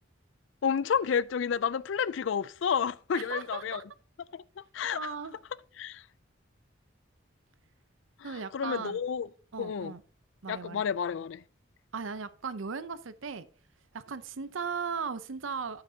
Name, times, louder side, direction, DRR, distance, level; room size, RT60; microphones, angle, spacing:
voice 1, 0.6-3.8 4.3-5.0 5.8-6.0 8.5-9.3 9.6-9.9 10.5-11.4, left 7 dB, 75° left, 0.4 m, -30 dB
voice 2, 3.1-3.8 4.9-5.4 8.2-9.0 9.5-10.0 10.4-10.8 11.9-13.5 13.9-15.8, right 5 dB, 85° right, 0.7 m, -37 dB
9.9 x 8.8 x 2.8 m
head